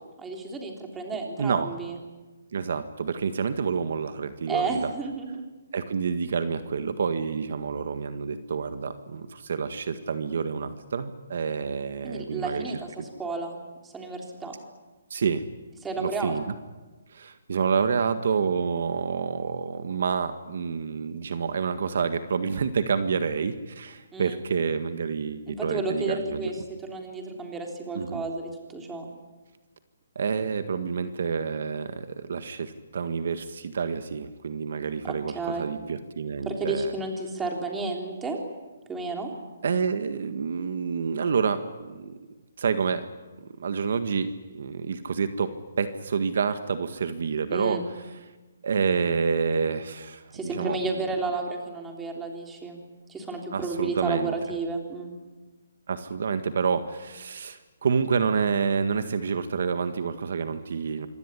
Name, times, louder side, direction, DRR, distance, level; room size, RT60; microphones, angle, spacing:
voice 1, 0.2-2.0 4.5-5.4 12.0-14.5 15.8-16.4 24.1-24.4 25.6-26.6 26.8-29.1 35.0-35.7 36.5-38.4 38.9-39.3 47.5-47.8 50.3-52.8 53.1-55.1, right 3 dB, 5° right, 2 dB, 3.4 m, -32 dB
voice 2, 1.4-1.7 2.5-4.9 5.7-13.0 15.1-15.4 16.0-16.5 17.1-26.5 27.9-28.2 30.2-36.9 39.6-42.2 42.6-43.1 43.4-48.0 48.6-51.1 53.5-54.3 55.9-61.1, right 5 dB, 55° right, 10 dB, 1.8 m, -28 dB
26.5 x 21.5 x 10.0 m, 1.2 s
hypercardioid pair, 170°, 0 cm